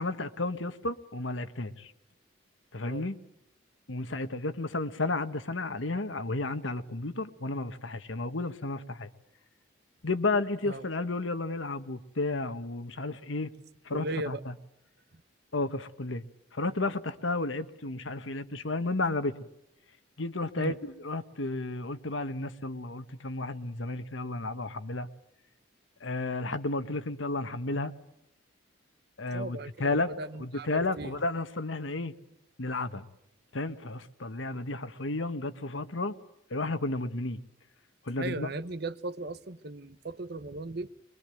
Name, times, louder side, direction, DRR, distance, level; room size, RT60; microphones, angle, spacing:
voice 1, 0.0-1.9 2.7-3.2 3.9-9.1 10.0-13.5 13.8-14.5 15.5-16.2 16.5-19.5 20.2-25.1 26.0-27.9 29.2-30.1 30.4-32.1 32.6-33.1 33.5-36.2 36.5-37.4 38.1-38.5, left 2 dB, 80° left, 1.4 m, -32 dB
voice 2, 13.9-14.4 20.6-20.8 29.3-31.2 38.2-40.9, right 2 dB, 55° right, 0.9 m, -37 dB
23.5 x 23.5 x 9.1 m
head